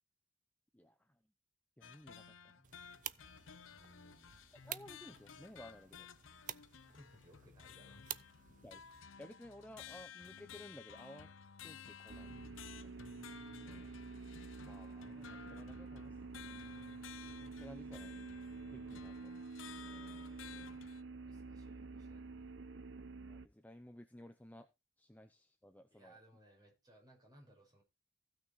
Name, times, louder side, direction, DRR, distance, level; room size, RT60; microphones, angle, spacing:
voice 1, 0.7-1.2 1.8-3.1 4.5-6.1 8.5-8.8 9.2-11.3 11.6-12.4 12.7-13.0 14.6-16.7 17.6-18.2 18.7-19.3 23.2-24.7 25.0-26.2, left 1 dB, 10° left, 7 dB, 0.7 m, -56 dB
sound 1, 1.8-21.0, left 7 dB, 75° left, 0.7 m, -55 dB
sound 2, 2.6-9.0, right 12 dB, 40° right, 0.5 m, -51 dB
voice 2, 3.7-4.4 7.0-8.4 13.7-14.0 19.8-22.6 25.9-27.8, equal, 20° right, 0 dB, 5.8 m, -64 dB
sound 3, 12.1-23.5, right 3 dB, 65° right, 0.8 m, -48 dB
15.5 x 6.1 x 4.2 m, 0.26 s
head